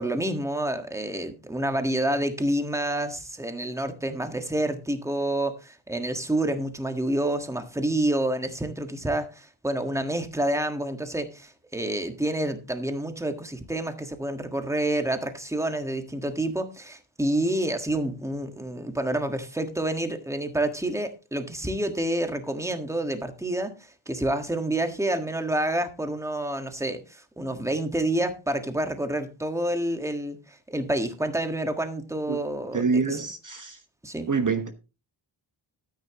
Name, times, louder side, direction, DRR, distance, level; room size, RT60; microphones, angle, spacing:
voice 1, 0.0-33.2 34.0-34.3, right 1 dB, 5° right, 1.5 m, -28 dB
voice 2, 32.7-33.8 34.3-34.7, right 4 dB, 40° right, 1.1 m, -25 dB
13.0 x 9.6 x 2.9 m
wide cardioid pair, 145°, 48 cm